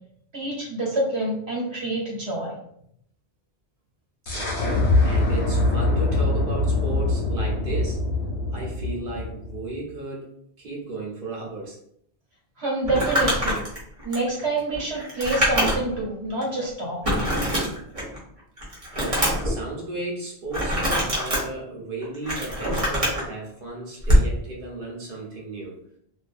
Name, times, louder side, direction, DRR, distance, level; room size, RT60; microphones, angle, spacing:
voice 1, 0.3-2.6 12.6-13.6 14.0-17.0, right 2 dB, 85° right, -2 dB, 1.2 m, -27 dB
sound 1, 4.3-9.8, left 2 dB, 70° left, 1.2 m, -23 dB
voice 2, 4.3-8.0 8.5-10.3 10.6-11.8 18.9-25.8, right 2 dB, 55° right, -2 dB, 0.9 m, -34 dB
Crumpling crinkling, 12.8-16.0 16.4-16.5 17.0-18.2 18.6-19.5 20.5-21.4 22.0-23.2 24.0-24.3, equal, 35° right, 0.9 m, -23 dB
2.6 x 2.5 x 2.5 m, 0.71 s
omnidirectional pair, 1.1 m